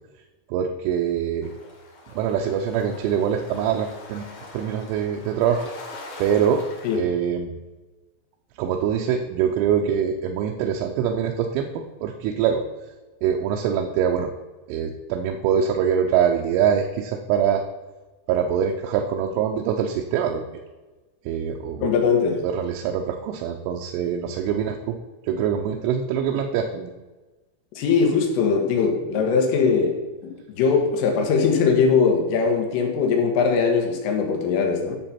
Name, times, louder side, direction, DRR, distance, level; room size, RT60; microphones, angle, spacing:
voice 1, 0.5-1.5 2.2-4.3 4.5-5.6 6.2-6.6 6.9-7.5 8.6-12.6 13.2-14.3 14.7-17.6 18.3-20.4 21.3-21.9 22.4-25.0 25.2-26.9, right 8 dB, 85° right, 2 dB, 3.2 m, -24 dB
sound 1, 1.4-7.0, left 2 dB, 45° left, 2.8 m, -43 dB
voice 2, 21.8-22.4 27.8-35.0, left 5 dB, 85° left, 2 dB, 4.1 m, -21 dB
10.5 x 7.1 x 4.3 m, 1.2 s
omnidirectional pair, 5.6 m